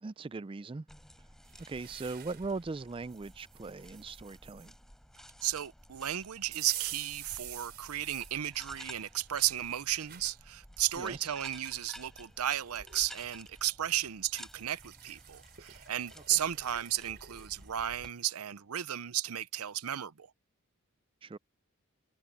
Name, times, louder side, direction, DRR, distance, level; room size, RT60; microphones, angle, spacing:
voice 1, 0.0-0.9 1.7-4.7 11.0-11.3 16.3-16.4 21.2-21.4, right 3 dB, 25° right, 0.4 m, -40 dB
sound 1, 0.9-18.1, equal, ahead, 3.8 m, -54 dB
sound 2, 1.5-2.6 3.1-4.7 6.5-8.4 8.9-10.4 11.0-11.1 12.1-12.2 12.5-13.1 14.4-18.4, right 12 dB, 45° right, 4.1 m, -47 dB
voice 2, 5.4-20.3, right 12 dB, 85° right, 0.7 m, -34 dB
head